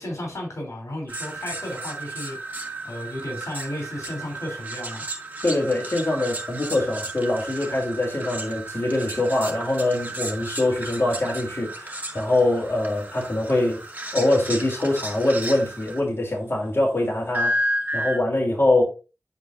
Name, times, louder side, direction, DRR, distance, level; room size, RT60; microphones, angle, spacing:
voice 1, 0.0-5.1, left 1 dB, 80° left, 3.3 m, -34 dB
sound 1, 1.1-16.0 17.3-18.2, right 1 dB, 35° right, 2.3 m, -33 dB
voice 2, 5.4-13.8 14.1-17.5 17.9-18.8, left 2 dB, 50° left, 3.1 m, -23 dB
9.7 x 5.1 x 2.6 m
wide cardioid pair, 55°, 5 cm